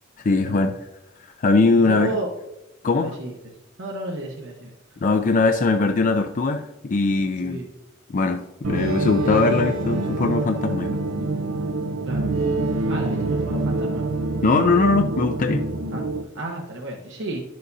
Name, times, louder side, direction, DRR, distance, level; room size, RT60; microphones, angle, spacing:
voice 1, 0.2-0.7 1.4-2.1 2.8-3.2 5.0-7.6 8.1-11.0 14.4-15.6, left 3 dB, 40° left, 6 dB, 0.4 m, -20 dB
voice 2, 1.7-2.3 3.0-3.5 3.8-4.7 7.4-7.7 12.0-12.3 12.9-14.0 15.9-16.0 16.3-17.4, right 2 dB, 60° right, -1 dB, 1.0 m, -32 dB
sound 1, 8.6-16.2, right 2 dB, 90° right, 0.7 m, -25 dB
11.0 x 6.5 x 2.7 m, 0.93 s
head